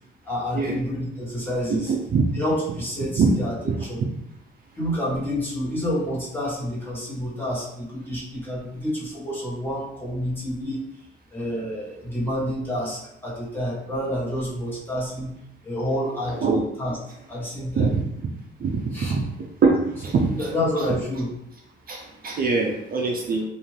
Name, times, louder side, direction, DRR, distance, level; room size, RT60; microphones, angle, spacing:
voice 1, 0.2-1.9 2.3-3.5 3.8-4.0 4.7-10.8 11.3-15.3 15.6-16.4 16.8-17.0 17.3-17.9 18.9-19.2 20.4-21.3, equal, 10° left, -7 dB, 1.3 m, -28 dB
voice 2, 1.7-2.3 3.2-3.3 3.7-3.8 16.4-16.6 17.8-18.0 18.6-18.8 19.1-19.3 19.6-20.5 21.9-23.4, right 4 dB, 50° right, 0 dB, 0.5 m, -22 dB
2.5 x 2.5 x 3.2 m, 0.80 s
cardioid pair, 90°, 20 cm